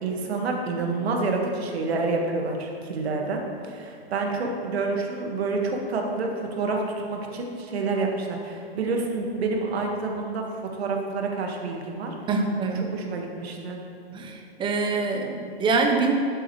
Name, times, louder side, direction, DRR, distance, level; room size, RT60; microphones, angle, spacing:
voice 1, 0.0-6.8 7.1-12.2 12.9-13.8, right 3 dB, 80° right, 1 dB, 1.7 m, -28 dB
voice 2, 12.3-12.8 14.1-16.1, right 4 dB, 15° right, 3 dB, 0.8 m, -25 dB
12.0 x 7.8 x 3.2 m, 2.6 s
hypercardioid pair, 145°, 31 cm